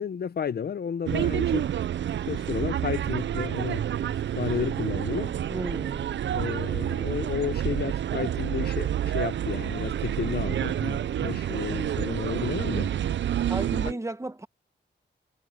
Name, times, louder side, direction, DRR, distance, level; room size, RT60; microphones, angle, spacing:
voice 1, 0.0-1.7 2.3-3.9 4.4-5.3 6.3-12.9, left 7 dB, 55° left, 0.7 m, -32 dB
sound 1, 1.1-13.9, right 10 dB, 70° right, 0.5 m, -28 dB
voice 2, 5.5-6.1 13.5-14.5, right 2 dB, 15° right, 1.4 m, -34 dB
wide cardioid pair, 105°, 20 cm